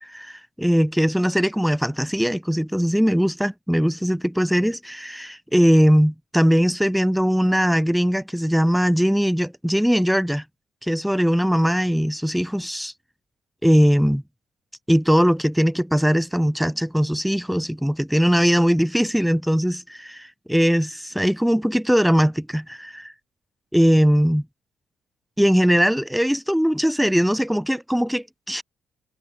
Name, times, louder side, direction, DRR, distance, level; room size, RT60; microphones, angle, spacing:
voice 1, 0.0-10.4 10.8-12.9 13.6-14.2 14.9-23.1 23.7-24.4 25.4-28.6, equal, ahead, 1.2 m, -20 dB
cardioid pair, 90°, 0 cm